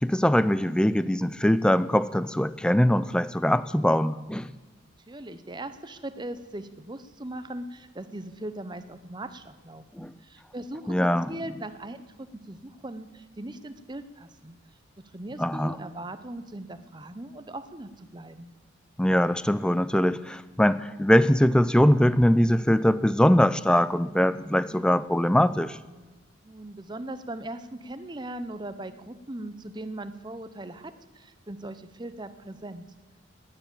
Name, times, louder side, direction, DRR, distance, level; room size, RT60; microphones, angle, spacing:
voice 1, 0.0-4.5 9.9-10.1 10.9-11.3 15.4-15.8 19.0-25.8, equal, 5° left, 15 dB, 0.4 m, -22 dB
voice 2, 5.1-14.6 15.1-18.5 26.4-32.8, right 1 dB, 25° right, 11 dB, 0.8 m, -39 dB
19.0 x 9.8 x 7.3 m, 1.2 s
head